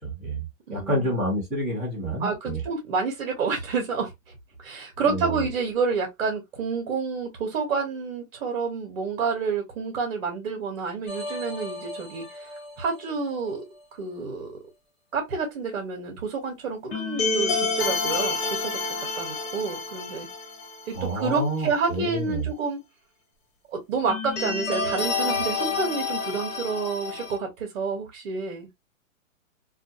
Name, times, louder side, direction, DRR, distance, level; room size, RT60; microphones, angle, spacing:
voice 1, 0.0-2.6 5.1-5.4 20.9-22.5, right 1 dB, ahead, 0.6 m, -29 dB
voice 2, 0.7-1.1 2.2-4.1 4.6-12.5 12.8-13.6 13.9-14.5 15.1-20.3 20.9-22.8 23.7-28.7, right 4 dB, 40° right, 0.9 m, -29 dB
sound 1, 11.1-12.9 16.9-21.3 21.6-21.7 24.1-27.4, left 4 dB, 45° left, 1.3 m, -29 dB
2.4 x 2.3 x 2.7 m
hypercardioid pair, 160°, 41 cm